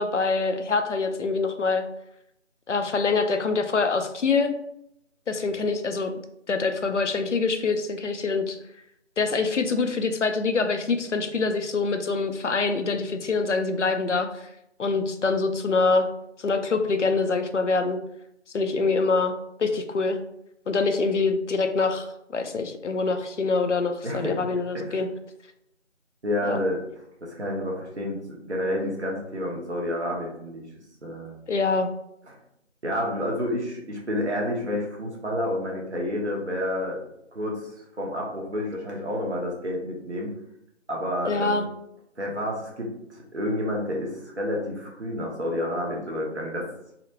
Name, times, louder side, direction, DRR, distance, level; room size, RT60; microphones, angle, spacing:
voice 1, 0.0-1.9 2.7-4.5 5.3-6.1 6.5-8.6 9.2-14.5 14.8-16.1 16.4-18.0 18.5-19.3 19.6-20.2 20.7-25.1 26.4-26.6 31.5-31.9 41.3-41.7, left 4 dB, 75° left, 7 dB, 0.5 m, -25 dB
voice 2, 24.0-24.4 24.7-25.0 26.2-26.8 27.2-30.6 31.0-31.4 32.2-32.3 32.8-37.0 37.3-37.7 38.0-40.3 40.9-41.6 42.2-46.7, left 1 dB, 65° right, -1 dB, 1.1 m, -29 dB
4.1 x 2.1 x 2.7 m, 0.79 s
figure-of-eight pair, 165°, 37 cm